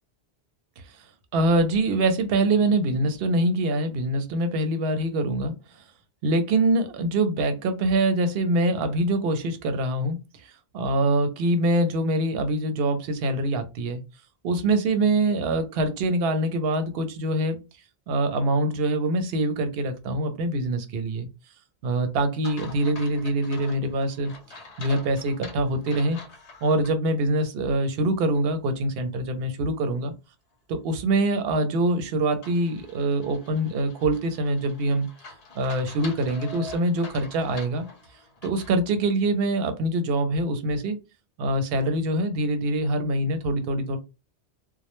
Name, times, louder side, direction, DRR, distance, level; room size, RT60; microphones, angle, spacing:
voice 1, 1.3-5.6 6.2-14.0 14.4-17.6 18.1-21.3 21.8-26.2 26.6-30.1 30.7-35.1 35.6-37.8 38.4-41.0 41.4-44.0, right 2 dB, 70° right, 0.8 m, -24 dB
sound 1, 22.4-26.9 27.4-27.5 32.4-38.8, left 3 dB, 45° left, 0.6 m, -45 dB
2.1 x 2.0 x 2.9 m
omnidirectional pair, 1.1 m